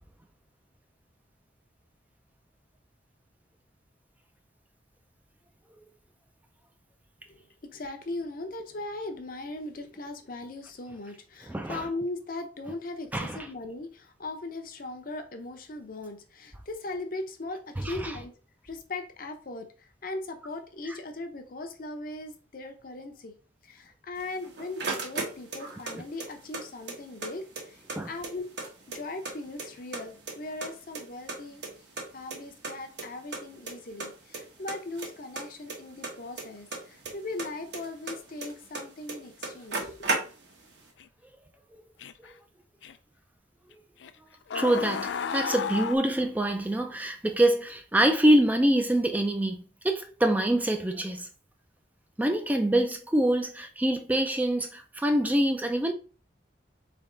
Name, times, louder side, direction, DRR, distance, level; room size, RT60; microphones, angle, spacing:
voice 1, 7.7-18.4 18.6-23.3 23.6-28.5 28.9-31.6 32.1-40.3, left 2 dB, 50° left, 0.7 m, -39 dB
voice 2, 11.5-11.8 13.1-13.4 17.8-18.1 28.0-28.1 42.2-42.3 44.5-51.3 52.2-55.9, right 1 dB, 10° right, 0.4 m, -25 dB
sound 1, 24.2-25.9 26.2-27.3 27.6-27.7 27.9-29.3 29.6-30.3 30.6-32.0 32.3-32.4 32.6-32.7 33.0-33.1 33.3-33.7 34.0-34.4 34.7-37.1 37.4-38.8 39.1-39.2 39.4-40.6, right 3 dB, 70° right, 1.2 m, -34 dB
sound 2, 41.0-41.1 42.0-42.3 42.8-42.9 44.0-44.1 44.5-46.0, left 7 dB, 80° left, 0.4 m, -32 dB
4.0 x 3.4 x 3.8 m
head